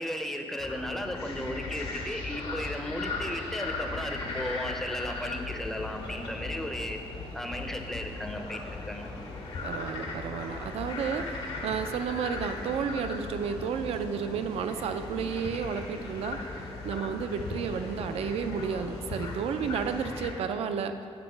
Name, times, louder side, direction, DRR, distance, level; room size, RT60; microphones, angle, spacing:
voice 1, 0.0-7.0 7.3-9.1, equal, 5° left, 4 dB, 0.5 m, -35 dB
sound 1, 0.6-20.3, left 3 dB, 85° left, 1.4 m, -38 dB
voice 2, 9.6-16.4 16.8-21.1, right 6 dB, 80° right, 8 dB, 0.4 m, -32 dB
8.2 x 4.8 x 5.0 m, 2.5 s
wide cardioid pair, 165°, 10 cm